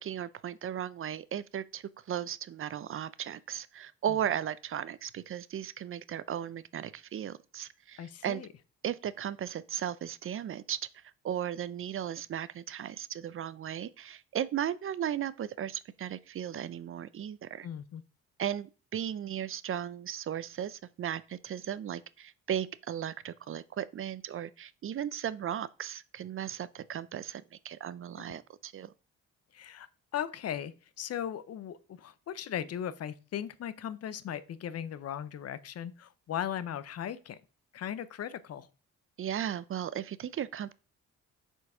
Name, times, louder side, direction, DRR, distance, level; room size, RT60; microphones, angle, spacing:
voice 1, 0.0-8.4 8.8-10.8 11.2-17.7 18.4-28.9 39.2-40.7, right 10 dB, 45° right, 0.5 m, -36 dB
voice 2, 8.0-8.5 17.6-18.0 29.5-29.9 30.1-37.4 37.7-38.7, left 9 dB, 55° left, 0.7 m, -37 dB
6.8 x 4.5 x 4.8 m
cardioid pair, 90°, 30 cm